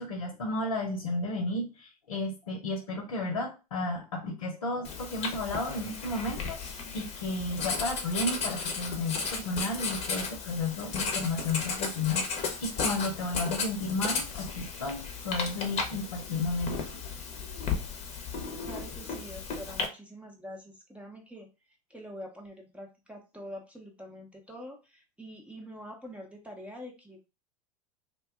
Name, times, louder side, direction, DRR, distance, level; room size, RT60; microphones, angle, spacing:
voice 1, 0.0-16.8, left 2 dB, 80° left, 1 dB, 0.9 m, -33 dB
Writing, 4.8-19.9, left 5 dB, 35° left, 0.8 m, -35 dB
voice 2, 18.6-21.5 21.9-27.3, equal, 5° right, 1 dB, 0.7 m, -45 dB
2.6 x 2.3 x 3.5 m, 0.30 s
hypercardioid pair, 95°, 18 cm